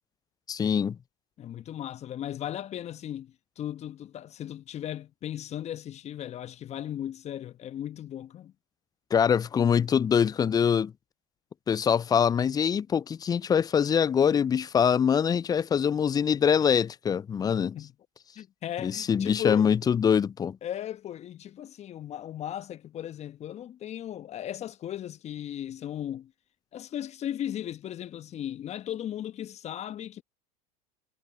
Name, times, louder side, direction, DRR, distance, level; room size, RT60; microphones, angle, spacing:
voice 1, 0.5-1.0 9.1-10.9 11.7-17.8 18.8-20.6, left 7 dB, 20° left, 0.5 m, -24 dB
voice 2, 1.4-8.5 17.7-17.9 18.3-19.7 20.6-26.3 26.7-30.2, left 11 dB, 35° left, 1.3 m, -37 dB
hypercardioid pair, 85°, 19 cm